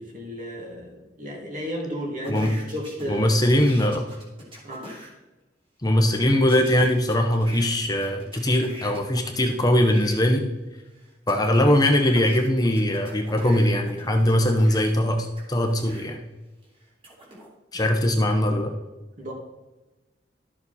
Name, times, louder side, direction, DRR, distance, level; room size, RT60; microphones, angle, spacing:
voice 1, 0.0-3.6 4.6-4.9 17.7-17.9 19.2-19.3, equal, 45° right, 0 dB, 2.4 m, -33 dB
sound 1, 2.2-5.1 6.5-10.1 10.8-16.1 16.6-17.5, equal, 30° right, 2.9 m, -43 dB
voice 2, 3.1-4.1 5.8-10.5 11.3-16.2 17.7-18.7, left 1 dB, 20° left, 4 dB, 0.9 m, -21 dB
12.0 x 6.9 x 4.2 m, 1.1 s
head